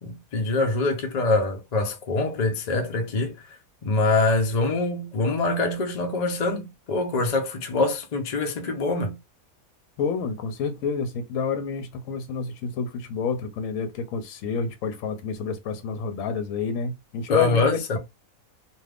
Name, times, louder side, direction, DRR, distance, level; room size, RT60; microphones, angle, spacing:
voice 1, 0.0-3.3 3.8-9.2 17.3-18.0, left 2 dB, 50° left, 0.5 m, -24 dB
voice 2, 10.0-18.0, left 5 dB, 75° left, 1.0 m, -29 dB
2.5 x 2.4 x 3.3 m
omnidirectional pair, 1.5 m